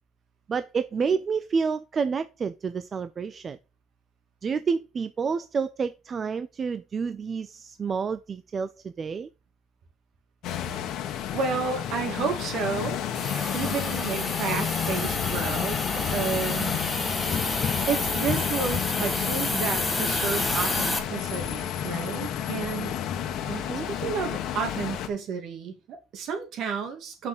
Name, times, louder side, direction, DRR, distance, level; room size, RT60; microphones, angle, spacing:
voice 1, 0.5-3.6 4.4-9.3 13.3-13.6 16.0-16.1 23.5-23.9, right 5 dB, 30° right, 0.5 m, -29 dB
sound 1, 10.4-25.1, left 9 dB, 60° left, 1.6 m, -31 dB
voice 2, 11.3-13.0 13.5-15.8 16.1-16.7 17.9-23.0 23.4-23.6 23.9-27.3, right 6 dB, 55° right, 2.7 m, -31 dB
Hiss, 13.1-21.0, left 2 dB, 10° left, 1.7 m, -30 dB
sound 2, 14.8-20.9, left 8 dB, 40° left, 0.7 m, -36 dB
6.3 x 6.0 x 6.6 m
cardioid pair, 145°, 0 cm